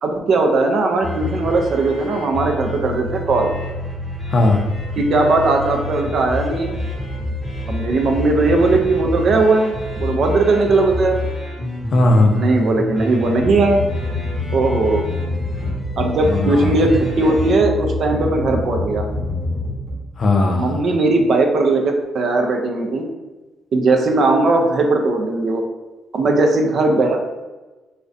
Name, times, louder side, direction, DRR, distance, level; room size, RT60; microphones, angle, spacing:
voice 1, 0.0-3.5 5.0-6.8 7.7-11.2 12.3-13.8 14.5-15.0 16.0-19.0 20.5-23.1 23.7-25.6 26.1-27.2, right 3 dB, 60° right, 3 dB, 0.4 m, -18 dB
sound 1, 1.0-19.9, left 2 dB, 5° right, 0.9 m, -26 dB
voice 2, 4.3-4.6 11.9-12.4 16.3-16.8 20.2-20.8, left 2 dB, 50° left, 2 dB, 0.4 m, -17 dB
2.4 x 2.1 x 2.5 m, 1.2 s
cardioid pair, 90°, 0 cm